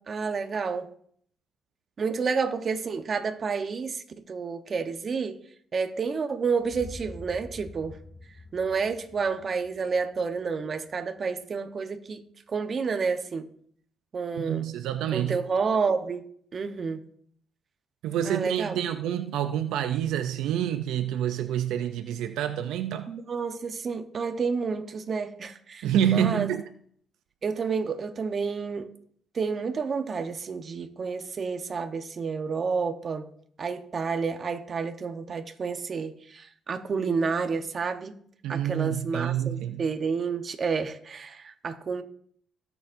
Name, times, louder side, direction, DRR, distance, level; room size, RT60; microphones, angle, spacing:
voice 1, 0.1-0.9 2.0-5.4 5.7-8.0 8.5-12.2 12.5-13.5 14.1-14.7 15.1-16.2 16.5-17.0 18.2-18.8 23.1-26.5 27.4-28.9 29.3-33.3 33.6-38.1 38.5-42.0, right 5 dB, 45° right, 1.0 m, -30 dB
sound 1, 6.6-10.6, left 1 dB, 30° left, 2.4 m, -46 dB
voice 2, 14.4-15.4 18.0-23.1 25.8-26.6 38.4-39.8, right 10 dB, 90° right, 0.5 m, -27 dB
18.5 x 7.0 x 2.6 m
cardioid pair, 90°, 0 cm